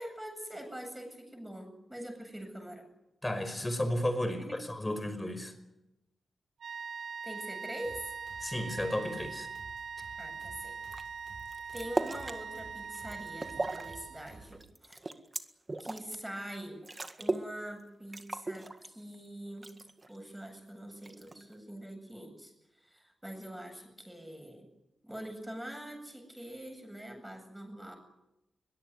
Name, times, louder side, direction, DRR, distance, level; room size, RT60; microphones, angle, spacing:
voice 1, 0.0-2.9 4.3-4.6 7.2-8.1 10.2-10.8 11.7-15.0 15.8-16.8 17.2-19.8 20.1-24.7 25.0-28.0, right 1 dB, 5° right, 5 dB, 8.0 m, -44 dB
voice 2, 3.2-5.5 8.4-9.5, left 1 dB, 15° left, 9 dB, 5.3 m, -33 dB
sound 1, 6.6-14.5, right 6 dB, 90° right, 1.3 m, -42 dB
sound 2, 7.8-14.7, right 3 dB, 70° right, 6.7 m, -54 dB
sound 3, 10.9-11.0 11.4-12.4 12.8-13.9 14.3-16.1 16.5-16.6 16.8-17.5 17.8-17.9 18.1-19.2 19.6-20.2 21.0-21.5, right 2 dB, 25° right, 1.9 m, -36 dB
23.0 x 21.5 x 9.8 m, 0.89 s
wide cardioid pair, 130°, 0 cm